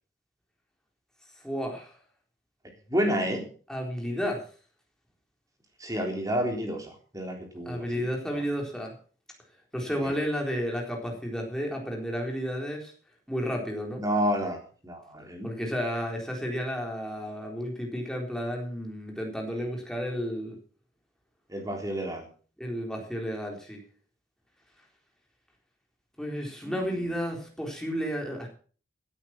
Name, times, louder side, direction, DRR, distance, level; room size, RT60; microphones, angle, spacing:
voice 1, 1.4-2.0 3.7-4.4 7.7-8.9 9.7-12.9 13.3-14.0 15.4-20.6 22.6-23.8 26.2-28.5, equal, 5° left, 0 dB, 3.9 m, -32 dB
voice 2, 2.9-3.4 5.8-8.1 10.0-10.1 14.0-15.5 21.5-22.3 26.6-27.1, equal, 20° right, 3 dB, 3.6 m, -30 dB
16.5 x 9.1 x 6.0 m, 0.41 s
head